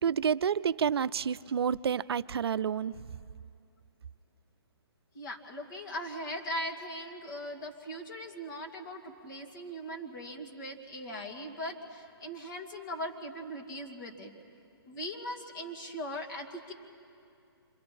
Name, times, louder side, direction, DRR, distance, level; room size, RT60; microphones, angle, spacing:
voice 1, 0.0-3.0, right 7 dB, 70° right, 14 dB, 0.4 m, -29 dB
voice 2, 5.1-14.3 14.9-16.7, equal, 50° left, 1 dB, 2.6 m, -40 dB
27.0 x 25.5 x 4.3 m, 2.5 s
hypercardioid pair, 155°, 13 cm